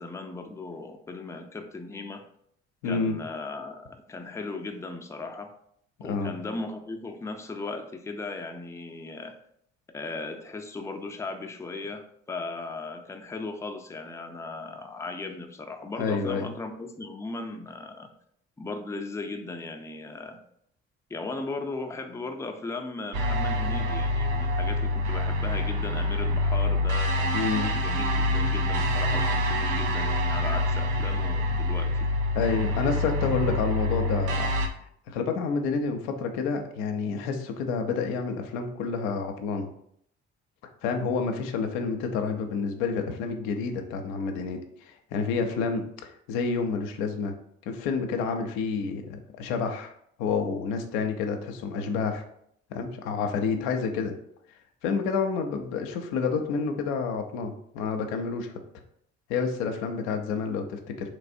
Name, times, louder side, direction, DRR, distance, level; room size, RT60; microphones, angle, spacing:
voice 1, 0.0-2.2 2.8-5.5 6.0-9.3 9.9-18.1 18.6-20.4 21.1-32.1, left 3 dB, 10° left, 4 dB, 0.5 m, -37 dB
voice 2, 2.8-3.2 6.1-6.3 16.0-16.5 27.3-27.7 32.3-34.5 35.1-39.7 40.8-44.6 44.9-47.3 47.7-49.9 50.2-52.2 52.7-54.1 54.8-58.5 59.3-61.1, left 5 dB, 80° left, 5 dB, 0.5 m, -29 dB
sound 1, 23.1-34.7, left 1 dB, 80° right, 0.6 m, -26 dB
3.3 x 3.1 x 2.5 m, 0.68 s
hypercardioid pair, 55°, 33 cm